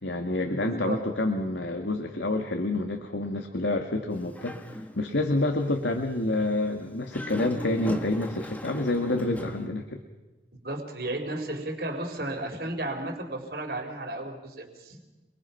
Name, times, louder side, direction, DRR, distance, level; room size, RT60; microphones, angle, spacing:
voice 1, 0.0-4.6 4.9-10.0, left 2 dB, 90° left, 4 dB, 2.1 m, -28 dB
voice 2, 0.6-1.0 10.6-15.0, right 1 dB, 60° right, 4 dB, 4.4 m, -33 dB
Dog, 4.1-5.2 5.6-5.8 7.0-9.7, equal, 10° left, 1.6 m, -39 dB
28.5 x 23.0 x 5.9 m, 1.2 s
head